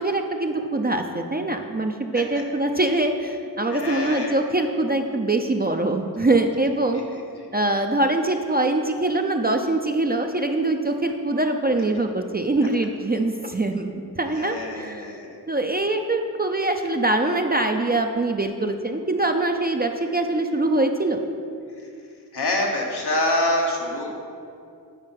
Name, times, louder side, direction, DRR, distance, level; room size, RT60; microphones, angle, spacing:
voice 1, 0.0-7.0 7.5-21.2, right 2 dB, 25° right, 4 dB, 0.5 m, -23 dB
voice 2, 3.7-4.4 7.4-7.5 14.3-15.4 21.8-21.9 22.3-24.1, left 1 dB, 85° left, -1 dB, 1.4 m, -26 dB
9.9 x 4.4 x 5.8 m, 2.4 s
wide cardioid pair, 70°, 38 cm